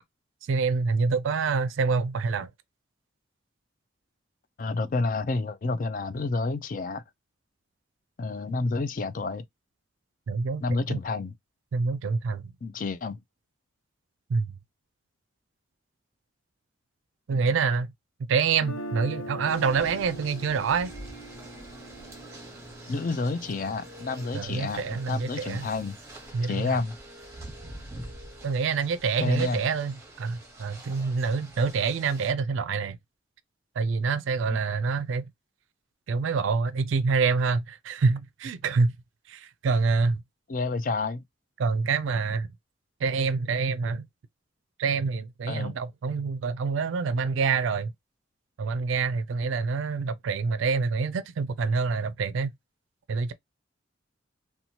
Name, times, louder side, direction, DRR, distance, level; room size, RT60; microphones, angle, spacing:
voice 1, 0.5-2.5 10.3-10.6 10.9-11.0 11.7-12.4 14.3-14.5 17.3-17.9 18.3-20.9 24.3-25.7 26.3-26.8 28.4-33.0 33.8-35.2 36.1-38.9 39.3-40.2 41.6-42.5 43.0-44.0 44.8-47.9 48.6-52.5 53.1-53.3, right 4 dB, 85° right, 0.4 m, -26 dB
voice 2, 4.6-7.0 8.2-9.4 10.6-11.3 12.6-13.2 17.3-17.5 22.9-26.0 26.5-27.0 29.2-29.7 40.5-41.2 45.5-45.8, left 3 dB, 45° left, 0.4 m, -29 dB
Guitar, 18.5-24.5, right 1 dB, 90° left, 0.6 m, -42 dB
sound 1, 19.5-32.3, right 1 dB, 15° right, 0.9 m, -45 dB
2.9 x 2.2 x 2.7 m
head